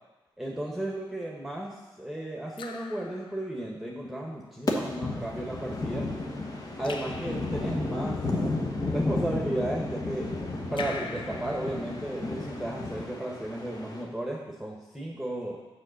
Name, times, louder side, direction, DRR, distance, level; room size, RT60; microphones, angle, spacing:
voice 1, 0.4-6.1 6.8-8.4 8.8-10.3 10.7-15.6, right 1 dB, ahead, -2 dB, 1.3 m, -34 dB
Raindrop / Drip, 0.8-1.2 2.6-3.9 6.8-8.0 10.8-12.5, left 4 dB, 65° left, 0.6 m, -43 dB
sound 1, 4.7-14.0, left 2 dB, 45° left, 1.3 m, -32 dB
6.4 x 5.0 x 6.4 m, 1.1 s
cardioid pair, 65°, 9 cm